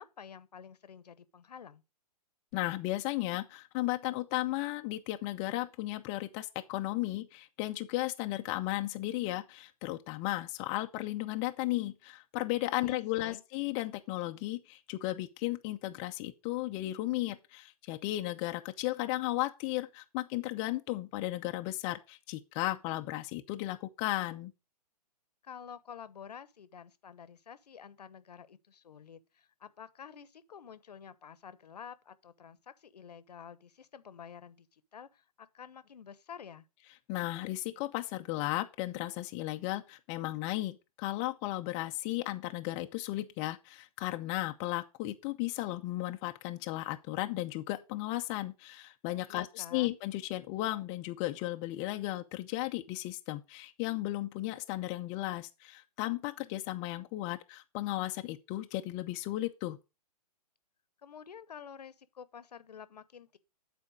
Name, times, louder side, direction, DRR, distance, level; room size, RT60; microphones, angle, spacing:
voice 1, 0.0-1.8 12.8-13.4 25.4-36.7 49.3-50.0 61.0-63.4, left 7 dB, 75° left, 1.0 m, -49 dB
voice 2, 2.5-24.5 37.1-59.8, left 17 dB, 30° left, 0.7 m, -35 dB
9.4 x 4.4 x 6.4 m
hypercardioid pair, 135°, 21 cm